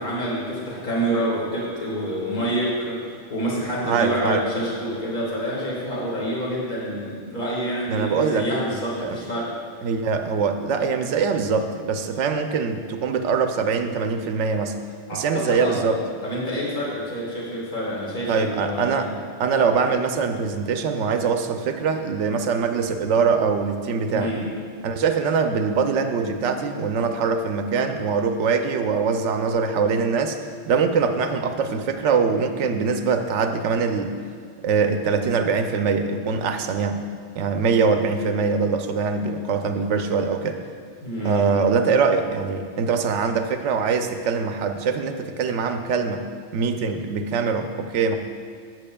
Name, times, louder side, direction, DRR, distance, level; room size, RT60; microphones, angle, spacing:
voice 1, 0.0-9.5 15.1-19.1 24.1-24.5 41.0-41.4, equal, 45° left, -5 dB, 1.8 m, -27 dB
voice 2, 3.8-4.4 7.9-8.5 9.0-9.2 9.8-14.8 15.1-16.0 18.3-19.1 19.4-24.3 24.8-34.1 34.6-37.0 37.4-40.6 41.2-46.3 46.5-48.2, right 5 dB, 85° right, 7 dB, 0.9 m, -23 dB
13.5 x 7.7 x 2.3 m, 2.1 s
omnidirectional pair, 1.2 m